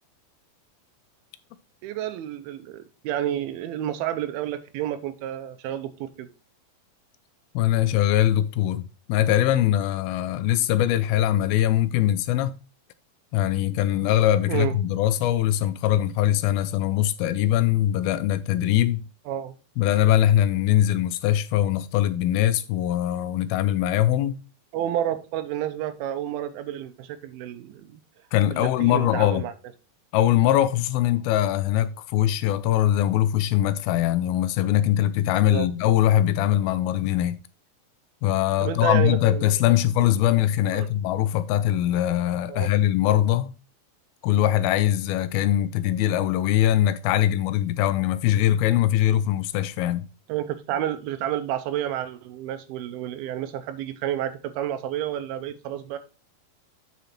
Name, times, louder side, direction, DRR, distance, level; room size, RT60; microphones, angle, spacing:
voice 1, 1.8-6.3 14.5-14.8 19.3-19.6 24.7-28.0 28.5-29.5 35.5-35.7 38.6-39.8 40.7-40.9 42.5-42.7 50.3-56.0, right 11 dB, 90° right, 2.6 m, -30 dB
voice 2, 7.5-8.8 9.1-12.6 13.3-19.0 19.8-24.4 28.3-29.4 30.1-37.4 38.2-43.5 44.2-50.1, left 12 dB, 85° left, 2.4 m, -22 dB
8.2 x 5.0 x 4.3 m
omnidirectional pair, 4.3 m